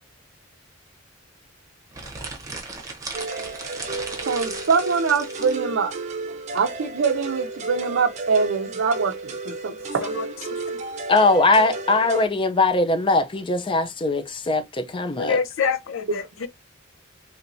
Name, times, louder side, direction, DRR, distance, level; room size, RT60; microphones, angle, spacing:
sound 1, 1.9-5.6, right 3 dB, 15° right, 0.9 m, -36 dB
sound 2, 3.1-12.3, right 3 dB, 35° right, 0.6 m, -33 dB
voice 1, 4.3-6.0 6.5-10.2 16.1-16.2, right 5 dB, 80° right, 0.5 m, -24 dB
voice 2, 11.1-15.4, left 2 dB, 25° left, 0.5 m, -20 dB
voice 3, 15.2-16.5, left 6 dB, 85° left, 0.5 m, -26 dB
3.3 x 2.9 x 2.6 m
head